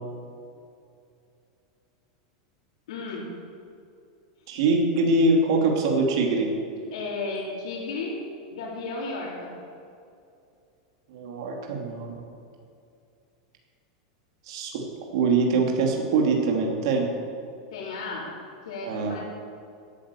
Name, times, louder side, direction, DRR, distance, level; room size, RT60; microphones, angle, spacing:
voice 1, 2.9-3.3 6.9-8.2 8.5-9.5 17.7-18.3 18.6-19.2, left 3 dB, 85° left, -9 dB, 4.1 m, -33 dB
voice 2, 4.5-6.5 11.1-12.1 14.5-14.8 15.1-17.1 18.8-19.2, right 3 dB, 60° right, 0 dB, 2.7 m, -23 dB
17.5 x 9.4 x 7.1 m, 2.5 s
supercardioid pair, 165°, 3 cm